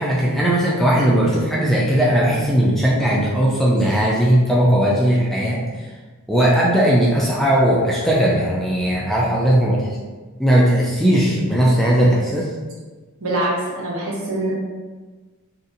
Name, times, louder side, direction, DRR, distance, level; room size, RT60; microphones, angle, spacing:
voice 1, 0.0-5.9 6.3-9.9 10.4-12.5, right 1 dB, ahead, -5 dB, 0.3 m, -18 dB
voice 2, 13.2-14.5, right 1 dB, 70° right, -4 dB, 0.9 m, -24 dB
2.7 x 2.5 x 3.7 m, 1.3 s
head